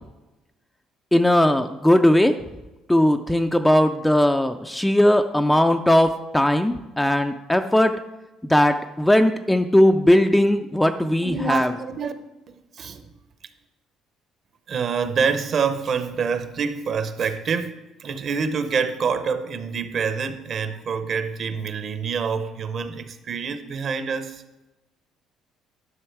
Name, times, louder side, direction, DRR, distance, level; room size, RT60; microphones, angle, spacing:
voice 1, 1.1-2.4 2.9-7.9 8.4-11.7, left 1 dB, 5° left, 7 dB, 0.3 m, -18 dB
voice 2, 11.2-12.1 12.5-13.0 14.7-24.4, right 5 dB, 40° right, 10 dB, 0.7 m, -26 dB
11.0 x 6.3 x 4.6 m, 1.0 s
cardioid pair, 150°, 0 cm